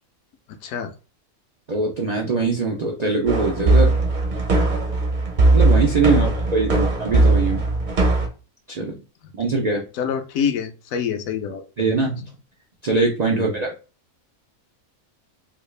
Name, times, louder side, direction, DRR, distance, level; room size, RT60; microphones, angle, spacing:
voice 1, 1.7-4.0 5.5-7.6 8.7-9.0 9.4-9.8 11.8-12.2 12.8-13.7, right 4 dB, 90° right, 0 dB, 0.3 m, -22 dB
sound 1, 3.3-8.3, right 2 dB, 45° right, 0.6 m, -19 dB
voice 2, 9.9-11.6 13.3-13.6, left 7 dB, 70° left, 7 dB, 0.9 m, -27 dB
3.5 x 2.3 x 3.1 m, 0.33 s
omnidirectional pair, 1.5 m